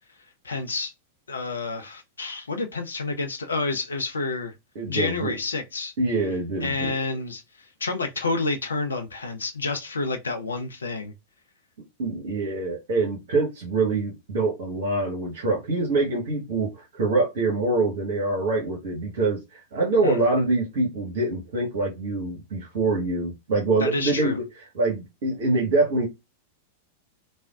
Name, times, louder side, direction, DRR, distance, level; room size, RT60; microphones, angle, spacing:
voice 1, 0.4-0.9 1.3-4.5 4.9-5.9 6.6-7.4 7.8-11.1 20.0-20.2 23.8-24.4, left 3 dB, 75° left, 0.5 m, -29 dB
voice 2, 4.7-5.4 6.0-7.0 12.0-26.1, right 3 dB, 55° right, 0.9 m, -25 dB
3.3 x 2.1 x 2.3 m
figure-of-eight pair, 95°, 0 cm